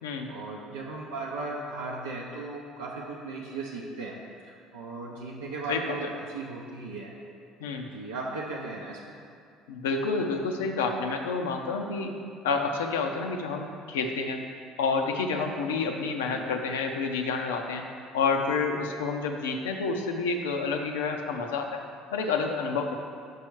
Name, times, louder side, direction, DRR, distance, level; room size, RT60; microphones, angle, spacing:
voice 1, 0.3-4.2 4.4-7.1 7.8-9.0 16.3-16.4, right 3 dB, 85° right, -4 dB, 0.5 m, -37 dB
voice 2, 9.7-12.2 12.4-14.4 14.8-17.8 18.1-21.8 22.1-22.9, left 4 dB, 85° left, 4 dB, 0.5 m, -29 dB
5.4 x 4.6 x 4.5 m, 2.4 s
hypercardioid pair, 65°, 0 cm